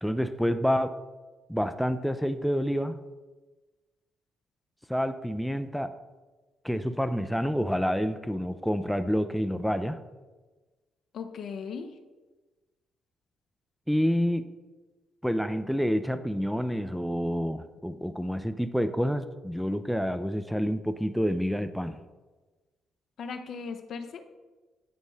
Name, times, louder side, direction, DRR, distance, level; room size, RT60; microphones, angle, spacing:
voice 1, 0.0-0.9 1.5-3.0 4.9-5.9 6.6-10.0 13.9-14.5 15.2-22.0, equal, ahead, 9 dB, 0.5 m, -28 dB
voice 2, 11.1-11.9 23.2-24.3, left 5 dB, 60° left, 7 dB, 0.6 m, -37 dB
9.4 x 5.1 x 3.2 m, 1.2 s
hypercardioid pair, 45°, 0 cm